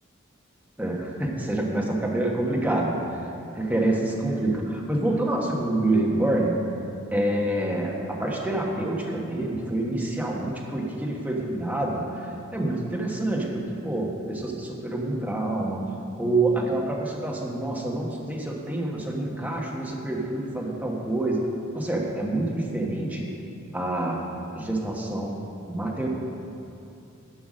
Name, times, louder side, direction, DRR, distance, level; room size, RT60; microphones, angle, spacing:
voice 1, 0.8-3.0 3.5-6.6 7.1-15.8 16.2-21.4 21.7-23.3 23.7-24.2 24.5-25.4 25.7-26.1, right 1 dB, 10° right, -2 dB, 1.2 m, -27 dB
11.5 x 5.7 x 6.4 m, 2.7 s
head